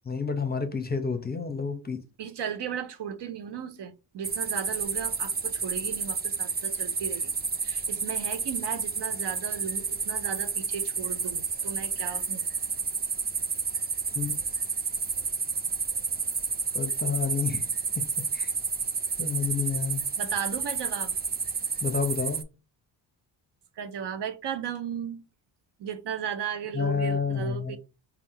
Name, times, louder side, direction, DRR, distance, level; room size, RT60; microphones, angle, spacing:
voice 1, 0.1-2.0 14.2-14.4 16.7-17.6 18.3-18.5 19.2-20.0 21.8-22.4 26.7-27.8, left 5 dB, 20° left, 0.8 m, -29 dB
voice 2, 2.2-7.3 7.6-12.4 20.2-21.1 23.8-25.2 25.8-27.8, right 8 dB, 65° right, 0.7 m, -35 dB
sound 1, 4.2-22.4, right 5 dB, 20° right, 0.4 m, -30 dB
3.5 x 2.5 x 4.2 m
cardioid pair, 65°, 45 cm